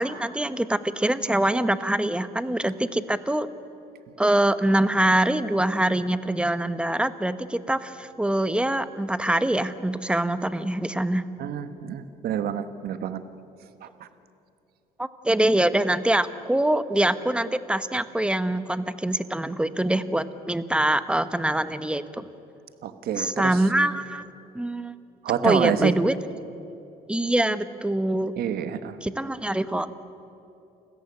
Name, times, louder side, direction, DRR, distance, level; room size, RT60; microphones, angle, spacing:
voice 1, 0.0-3.5 4.2-11.2 15.0-22.3 23.2-24.2 24.5-25.0 25.4-26.1 27.1-28.3 29.0-29.9, right 1 dB, 5° right, 13 dB, 1.0 m, -24 dB
voice 2, 11.4-13.2 13.8-14.1 22.8-23.6 25.2-25.9 28.4-29.0, right 9 dB, 65° right, 11 dB, 1.4 m, -28 dB
29.0 x 14.5 x 9.8 m, 2.7 s
cardioid pair, 110°, 17 cm